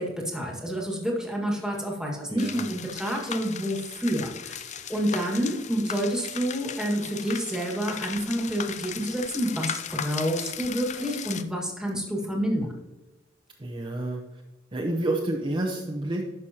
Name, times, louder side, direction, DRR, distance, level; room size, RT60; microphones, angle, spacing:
voice 1, 0.0-12.7, equal, 5° right, -2 dB, 1.7 m, -29 dB
voice 2, 2.3-2.6 13.6-14.2 14.7-16.2, right 1 dB, 25° right, -2 dB, 0.8 m, -29 dB
sound 1, 2.4-11.4, left 8 dB, 35° left, 0.4 m, -37 dB
11.0 x 6.3 x 2.9 m, 1.1 s
head